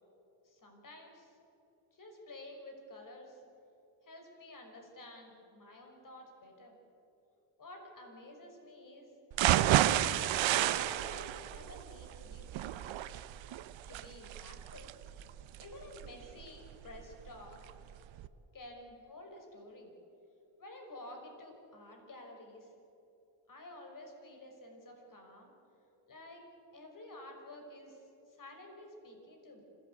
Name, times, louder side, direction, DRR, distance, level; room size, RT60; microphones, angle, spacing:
voice 1, 0.4-1.4 1.9-3.4 4.0-6.8 7.6-9.1 9.6-9.9 10.5-12.9 13.9-14.9 15.6-17.6 18.5-19.9 20.6-22.7 23.5-25.5 26.1-29.6, left 1 dB, 45° left, 3 dB, 5.6 m, -51 dB
sound 1, 9.3-17.3 17.7-17.8 18.2-18.3, right 13 dB, 85° right, 1.0 m, -31 dB
26.0 x 17.5 x 8.1 m, 3.0 s
cardioid pair, 105°, 45 cm